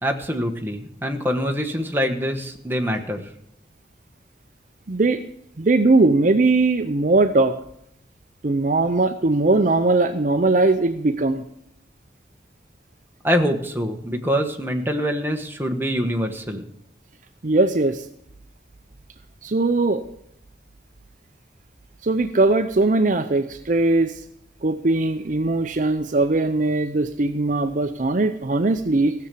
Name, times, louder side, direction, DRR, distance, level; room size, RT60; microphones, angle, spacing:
voice 1, 0.0-3.3 13.2-16.6, equal, 10° right, 4 dB, 1.3 m, -24 dB
voice 2, 4.9-5.2 5.6-7.6 8.4-11.4 17.4-18.1 19.4-20.0 22.0-24.1 24.6-29.1, right 2 dB, 45° right, 9 dB, 0.6 m, -20 dB
16.0 x 6.9 x 7.5 m, 0.74 s
head